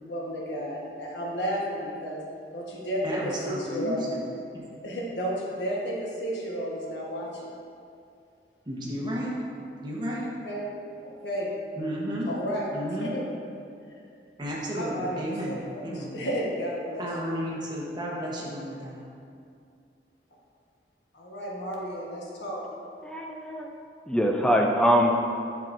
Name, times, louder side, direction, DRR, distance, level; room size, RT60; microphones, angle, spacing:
voice 1, 0.0-2.2 2.5-4.0 4.8-7.5 10.4-10.7 11.0-11.5 12.3-12.7 13.0-13.2 13.9-14.0 14.7-15.2 15.5-17.1 21.1-22.6, equal, 80° left, -3 dB, 1.2 m, -32 dB
voice 2, 3.0-4.2 4.5-4.6 8.7-9.3 9.8-10.3 11.8-12.3 12.7-13.1 14.4-16.1 17.0-19.0, equal, 25° right, -5 dB, 1.1 m, -33 dB
voice 3, 23.0-23.7 24.1-25.1, equal, 5° left, 1 dB, 0.3 m, -23 dB
7.5 x 5.9 x 2.6 m, 2.4 s
head